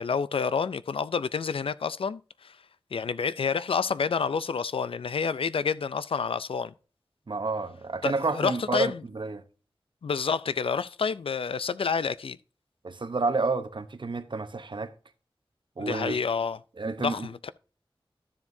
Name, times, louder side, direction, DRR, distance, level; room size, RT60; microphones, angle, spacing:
voice 1, 0.0-2.6 2.9-6.7 8.0-9.0 10.0-12.4 15.8-16.6 17.0-17.5, left 5 dB, 85° left, 0.4 m, -29 dB
voice 2, 7.3-9.4 12.8-14.9 15.8-16.2 16.8-17.3, right 3 dB, 60° right, 0.8 m, -30 dB
13.0 x 7.2 x 2.7 m
wide cardioid pair, 70°, 9 cm